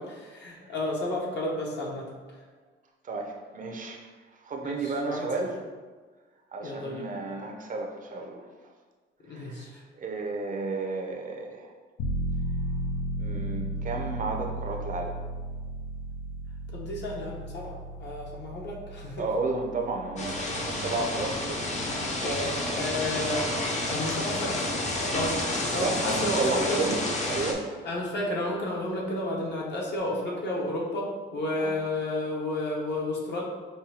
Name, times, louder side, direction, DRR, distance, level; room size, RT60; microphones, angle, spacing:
voice 1, 0.2-2.1 4.6-5.2 6.6-7.1 9.3-9.8 16.7-19.3 22.2-23.5 23.9-24.7 25.1-25.4 25.7-26.8 27.8-33.4, left 1 dB, 60° left, -3 dB, 1.0 m, -32 dB
voice 2, 3.0-4.0 4.4-5.5 6.5-8.5 9.3-9.6 10.0-11.7 13.2-15.2 19.2-21.6 25.7-27.6 30.3-30.4 31.6-31.7, right 3 dB, 40° right, 2 dB, 0.5 m, -32 dB
sound 1, 12.0-24.5 24.9-25.0, right 1 dB, 85° left, 0.5 m, -36 dB
sound 2, 20.2-27.5, left 1 dB, 35° left, 0.6 m, -30 dB
5.3 x 2.2 x 2.8 m, 1.4 s
cardioid pair, 90°, 20 cm